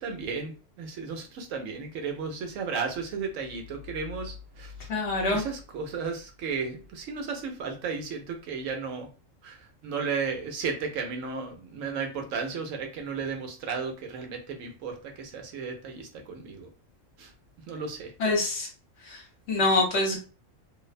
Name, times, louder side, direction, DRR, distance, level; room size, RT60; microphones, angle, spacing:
voice 1, 0.0-4.9 5.3-9.1 9.4-16.7 17.2-17.3 17.7-18.1, right 5 dB, 80° right, 3 dB, 1.0 m, -34 dB
voice 2, 4.9-5.4 18.2-18.7 19.0-20.2, left 2 dB, 60° left, 0 dB, 1.0 m, -26 dB
2.6 x 2.0 x 2.4 m, 0.35 s
omnidirectional pair, 1.4 m